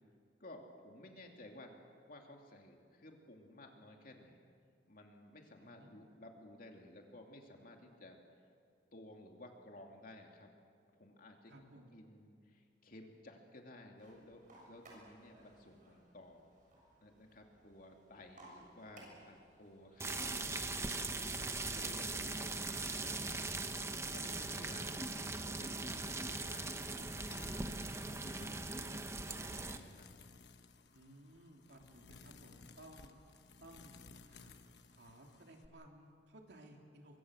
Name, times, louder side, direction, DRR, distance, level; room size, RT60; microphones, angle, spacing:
voice 1, 0.4-1.7 2.1-4.4 4.9-8.2 8.9-10.5 10.9-11.5 11.9-16.6 17.0-21.1 21.7-23.5 24.1-26.9 27.5-28.8 29.2-30.1, left 1 dB, 55° left, 2 dB, 2.7 m, -56 dB
voice 2, 5.6-5.9 11.5-12.1 22.2-22.9 30.9-33.2 33.6-34.6 34.9-37.2, right 1 dB, 70° right, 1 dB, 3.2 m, -59 dB
sound 1, 14.0-22.4, right 1 dB, 50° right, 6.8 m, -62 dB
sound 2, 20.0-29.8, right 3 dB, 15° right, 1.0 m, -40 dB
sound 3, 25.8-35.7, left 4 dB, 70° left, 1.2 m, -58 dB
24.0 x 23.5 x 6.5 m, 2.2 s
head